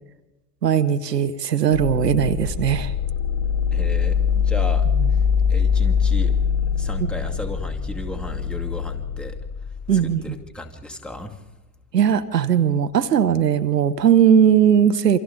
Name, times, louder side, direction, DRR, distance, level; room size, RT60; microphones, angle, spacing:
voice 1, 0.6-2.9 5.0-5.1 7.0-7.1 9.9-10.4 11.9-15.2, right 8 dB, 80° right, 12 dB, 1.0 m, -18 dB
sound 1, 1.7-10.4, left 7 dB, 30° left, 3.3 m, -23 dB
voice 2, 3.7-4.9 5.5-6.4 6.8-9.4 10.2-11.4, left 1 dB, ahead, 1 dB, 2.4 m, -35 dB
28.0 x 25.5 x 3.9 m, 1.1 s
figure-of-eight pair, 75°, 48 cm